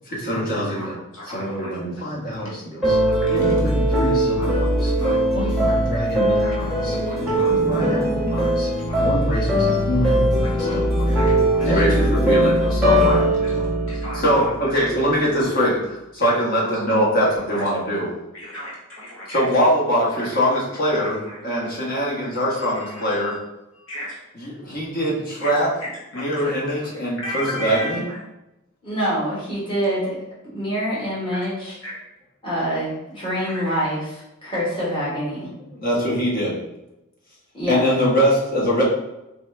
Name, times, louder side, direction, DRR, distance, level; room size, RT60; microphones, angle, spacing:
voice 1, 0.1-0.9 1.3-3.0 3.3-4.9 5.3-6.9 7.3-8.7 9.0-11.0 11.7-13.2 13.5-13.7 14.2-18.1 19.3-23.4 24.6-25.7 26.1-28.0 35.7-36.6 37.7-38.8, equal, 40° left, -5 dB, 1.4 m, -23 dB
voice 2, 0.7-1.7 2.3-2.5 3.0-3.4 4.3-5.5 6.4-6.6 6.9-7.9 8.9-9.1 9.6-10.2 10.4-10.7 11.1-11.9 12.3-12.4 12.9-13.1 13.4-14.9 15.4-15.5 16.6-16.8 17.5-17.7 18.3-19.4 20.1-20.4 20.9-21.7 22.7-23.4 23.7-24.2 25.4-26.5 27.2-28.2 31.3-31.5 31.8-32.0 33.3-33.8, left 1 dB, 65° left, -5 dB, 1.1 m, -36 dB
sound 1, 2.8-14.9, right 1 dB, ahead, 1.1 m, -20 dB
voice 3, 7.7-8.2 28.8-30.2 30.5-31.7 32.4-34.0 34.4-35.5 37.5-37.8, equal, 25° left, -8 dB, 1.5 m, -25 dB
4.2 x 3.2 x 3.3 m, 0.93 s
head